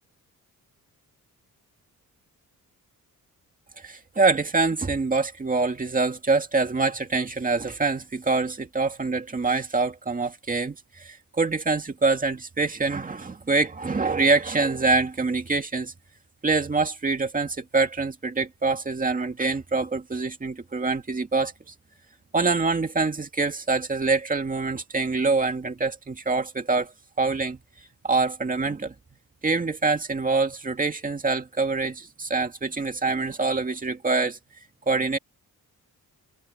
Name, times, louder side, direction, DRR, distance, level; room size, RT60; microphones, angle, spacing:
voice 1, 3.8-15.9 16.4-21.5 22.3-26.9 27.2-27.6 28.0-28.9 29.4-34.4 34.9-35.2, right 3 dB, 25° right, 2.2 m, -25 dB
wide cardioid pair, 150°, 35 cm